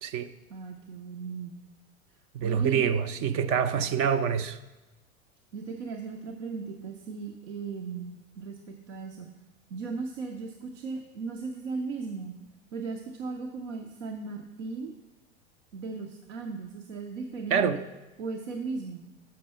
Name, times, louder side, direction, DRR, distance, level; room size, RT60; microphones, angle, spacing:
voice 1, 0.5-1.6 2.4-2.9 5.5-9.3 9.7-12.4 12.7-14.9 15.7-17.9 18.2-19.1, right 4 dB, 75° right, 0.7 m, -37 dB
voice 2, 2.3-4.6 17.5-17.8, right 7 dB, 35° right, 0.4 m, -26 dB
6.7 x 5.4 x 5.4 m
hypercardioid pair, 85°, 38 cm